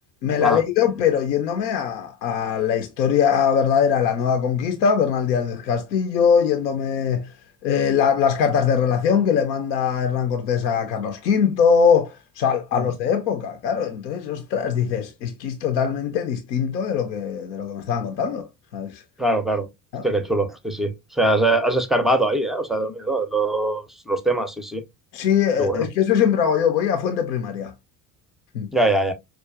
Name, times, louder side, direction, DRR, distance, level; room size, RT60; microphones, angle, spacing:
voice 1, 0.2-7.3 7.6-18.5 18.7-19.0 19.9-20.0 25.1-27.7 28.5-28.7, left 7 dB, 85° left, 0.6 m, -21 dB
voice 2, 19.2-19.7 20.0-24.8 25.6-25.9 28.7-29.1, right 2 dB, ahead, 0.4 m, -22 dB
4.6 x 2.4 x 2.3 m
hypercardioid pair, 60°, 50 cm